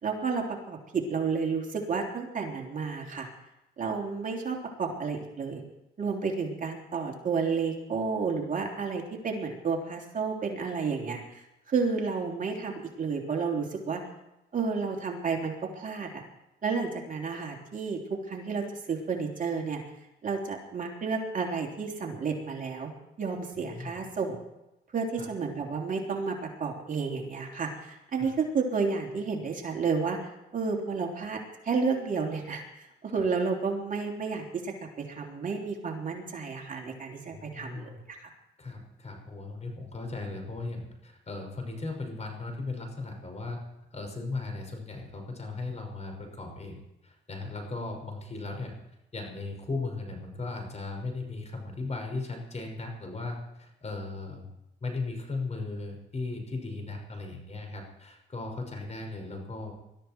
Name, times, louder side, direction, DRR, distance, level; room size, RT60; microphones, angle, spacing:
voice 1, 0.0-3.3 3.8-5.6 6.0-14.0 14.5-16.2 16.6-19.8 20.2-22.9 23.2-24.4 24.9-31.4 31.6-37.9 38.2-38.3, right 5 dB, 40° right, 1 dB, 3.4 m, -31 dB
voice 2, 23.6-24.1 25.2-25.3 28.2-28.3 37.3-38.0 38.6-43.6 43.9-48.8 49.1-54.5 54.8-59.7, left 3 dB, 35° left, 3 dB, 5.7 m, -37 dB
21.5 x 13.5 x 4.6 m, 0.91 s
cardioid pair, 90°, 20 cm